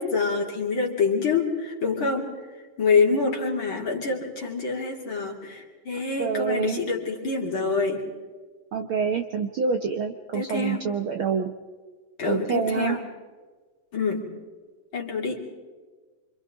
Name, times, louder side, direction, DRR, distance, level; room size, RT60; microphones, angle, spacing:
voice 1, 0.0-2.3 2.8-8.0 10.3-10.8 12.2-13.0 13.9-14.3 14.9-15.5, left 4 dB, 35° left, 0 dB, 3.6 m, -26 dB
voice 2, 6.2-6.8 8.7-11.5 12.3-13.0, right 6 dB, 85° right, 3 dB, 1.1 m, -26 dB
29.0 x 26.5 x 4.0 m, 1.4 s
omnidirectional pair, 4.0 m